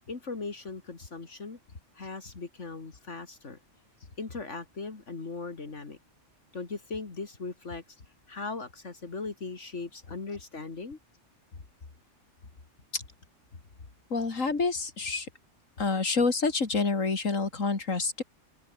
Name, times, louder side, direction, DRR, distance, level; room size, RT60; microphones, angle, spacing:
voice 1, 0.1-1.6 1.9-3.6 4.2-6.0 6.5-8.0 8.3-11.0, left 4 dB, 65° left, 2.8 m, -39 dB
voice 2, 14.1-15.3 15.8-18.2, left 4 dB, 85° left, 3.2 m, -28 dB
omnidirectional pair, 1.3 m